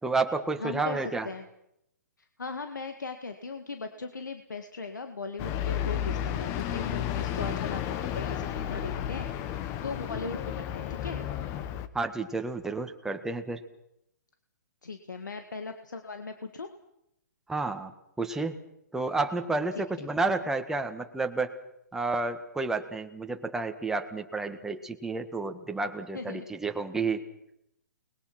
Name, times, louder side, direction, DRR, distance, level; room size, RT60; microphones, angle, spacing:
voice 1, 0.0-1.3 11.9-13.6 17.5-17.9 18.2-18.6 18.9-21.5 21.9-27.2, right 3 dB, 5° right, 5 dB, 1.6 m, -30 dB
voice 2, 0.6-1.5 2.4-11.3 14.8-16.7 26.1-26.5, left 4 dB, 90° left, 7 dB, 1.9 m, -38 dB
sound 1, 5.4-11.9, left 10 dB, 30° left, 1.3 m, -32 dB
29.5 x 21.0 x 6.0 m, 0.80 s
hypercardioid pair, 135°, 10 cm